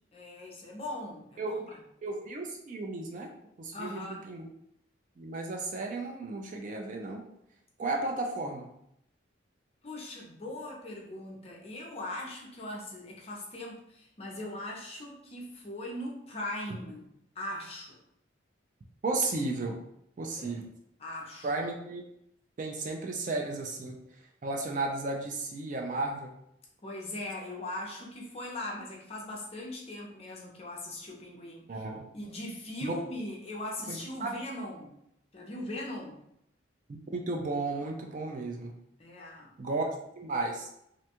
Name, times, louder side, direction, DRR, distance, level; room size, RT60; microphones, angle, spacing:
voice 1, 0.1-1.8 3.7-4.2 9.8-17.1 17.4-18.0 20.4-20.6 21.0-21.5 26.8-31.8 32.1-34.9 35.3-36.2 39.0-39.8, left 1 dB, 30° left, -2 dB, 0.5 m, -40 dB
voice 2, 2.0-3.3 3.6-4.5 5.2-7.2 7.8-8.7 19.0-19.8 20.2-20.7 21.4-22.1 22.6-24.0 24.4-26.3 31.7-32.0 32.8-32.9 33.9-34.3 37.1-38.7 39.6-39.9 40.2-40.7, right 3 dB, 40° right, 2 dB, 0.3 m, -34 dB
2.5 x 2.2 x 2.8 m, 0.76 s
head